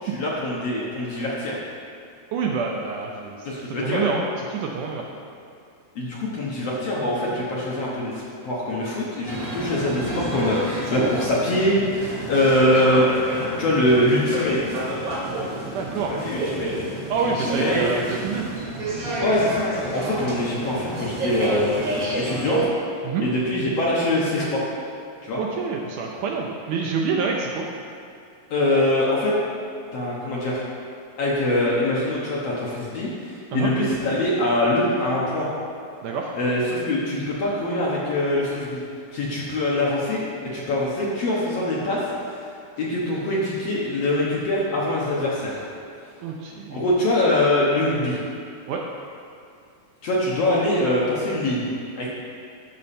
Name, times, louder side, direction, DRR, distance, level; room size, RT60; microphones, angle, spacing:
voice 1, 0.0-1.6 3.5-4.0 6.0-13.1 13.6-14.8 16.1-16.7 17.4-17.8 19.2-21.8 22.1-22.6 23.2-24.7 25.2-25.4 28.5-29.3 29.9-30.6 31.2-35.5 36.3-38.8 39.1-42.5 42.8-45.6 46.7-48.2 50.0-51.6 52.0-52.1, left 1 dB, 60° left, -5 dB, 1.8 m, -23 dB
voice 2, 2.3-3.5 3.8-5.1 15.7-16.2 17.1-18.5 23.0-23.3 25.4-27.7 33.5-33.7 36.0-36.3 46.2-46.8 48.7-48.8, right 5 dB, 75° right, 0 dB, 1.9 m, -27 dB
sound 1, 9.3-22.7, right 1 dB, 40° right, 1.3 m, -29 dB
12.5 x 6.4 x 4.2 m, 2.4 s
omnidirectional pair, 4.1 m